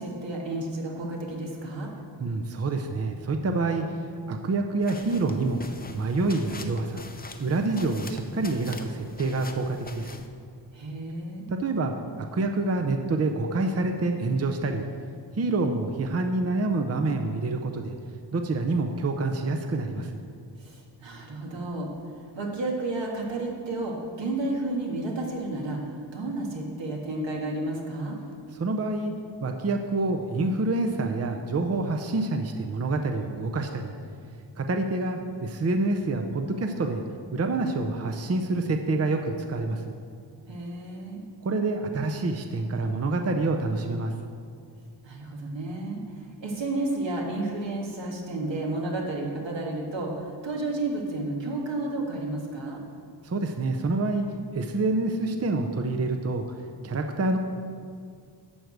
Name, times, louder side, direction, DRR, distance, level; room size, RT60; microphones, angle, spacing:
voice 1, 0.0-1.9 10.7-11.5 20.6-28.2 40.5-41.2 45.0-52.8, right 2 dB, 80° right, -1 dB, 1.9 m, -32 dB
voice 2, 2.2-5.6 5.9-7.0 7.4-10.2 11.5-11.9 12.2-14.8 15.3-17.9 18.3-20.1 28.5-29.1 29.4-33.9 34.6-37.0 37.3-39.9 41.4-44.1 53.2-54.3 54.5-56.4 56.8-57.4, right 2 dB, 35° right, 4 dB, 0.6 m, -27 dB
sound 1, 4.8-10.3, left 3 dB, 20° left, 0.6 m, -44 dB
11.5 x 4.7 x 7.9 m, 2.2 s
wide cardioid pair, 135°, 44 cm